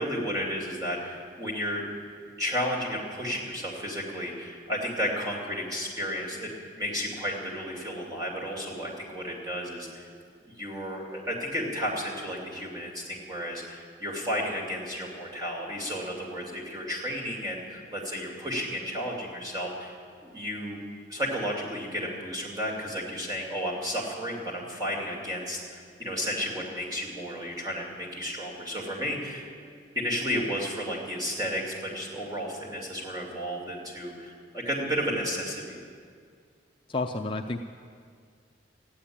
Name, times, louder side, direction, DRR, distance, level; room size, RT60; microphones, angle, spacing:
voice 1, 0.0-1.8 2.4-10.1 10.4-20.8 21.1-35.8, equal, 20° right, -3 dB, 2.7 m, -33 dB
voice 2, 36.9-37.6, left 2 dB, 25° left, 3 dB, 0.5 m, -30 dB
15.0 x 10.5 x 8.7 m, 2.1 s
head